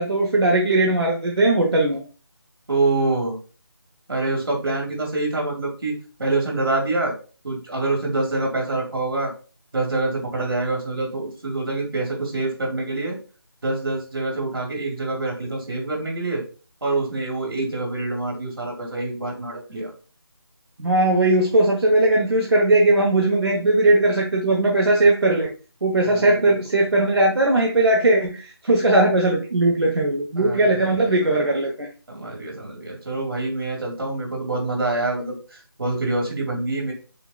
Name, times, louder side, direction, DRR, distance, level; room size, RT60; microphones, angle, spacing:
voice 1, 0.0-2.0 20.8-25.5 25.8-31.9, right 2 dB, 80° right, -1 dB, 1.1 m, -19 dB
voice 2, 2.7-3.4 4.1-7.1 7.4-9.3 9.7-13.2 13.6-16.4 16.8-19.9 26.0-26.6 30.4-31.2 32.1-36.9, right 2 dB, 60° right, -1 dB, 2.2 m, -26 dB
6.6 x 2.6 x 2.4 m, 0.37 s
figure-of-eight pair, 165°, 13 cm